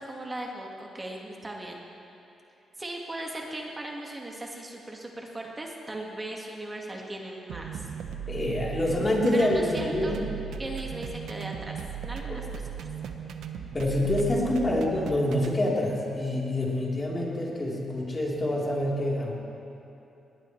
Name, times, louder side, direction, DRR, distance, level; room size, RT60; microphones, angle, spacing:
voice 1, 0.0-1.8 2.8-7.9 9.3-10.2 10.6-12.7, right 1 dB, 20° right, -1 dB, 1.8 m, -38 dB
sound 1, 7.5-15.6, right 8 dB, 85° right, 0.9 m, -37 dB
voice 2, 8.3-10.2 12.3-12.4 13.7-19.3, left 1 dB, 30° left, -4 dB, 3.6 m, -26 dB
20.0 x 18.5 x 3.2 m, 2.8 s
cardioid pair, 100°, 0 cm